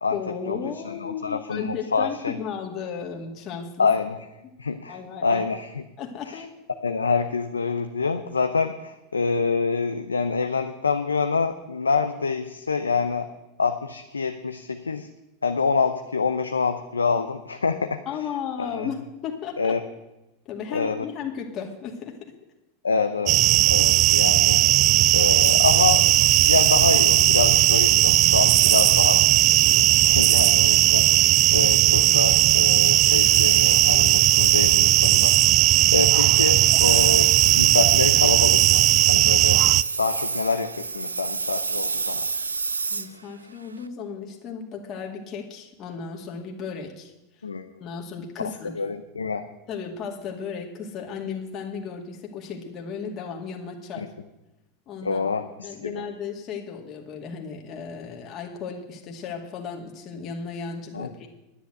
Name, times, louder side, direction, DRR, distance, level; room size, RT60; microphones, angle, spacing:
voice 1, 0.1-3.9 4.9-5.4 6.0-6.6 18.1-19.8 20.5-22.3 23.7-23.8 42.9-47.1 47.8-48.7 49.7-54.1 54.9-55.2 55.6-61.3, left 6 dB, 40° left, 1 dB, 2.2 m, -35 dB
voice 2, 0.8-2.4 3.8-4.2 4.6-5.8 6.2-6.4 6.8-13.3 13.6-15.1 15.4-18.0 18.6-18.9 19.6-19.8 20.7-21.1 22.8-23.4 23.7-24.6 25.1-26.1 26.4-29.2 29.6-35.3 35.9-39.6 40.0-42.2 47.4-47.7 48.6-49.4 54.0-54.1 55.0-56.0 60.9-61.1, left 5 dB, 90° left, 7 dB, 0.7 m, -26 dB
sound 1, 23.3-39.8, right 15 dB, 45° right, 0.4 m, -17 dB
Engine, 25.4-43.9, right 4 dB, 90° right, 0.6 m, -31 dB
10.5 x 10.0 x 7.8 m, 0.97 s
hypercardioid pair, 90°, 0 cm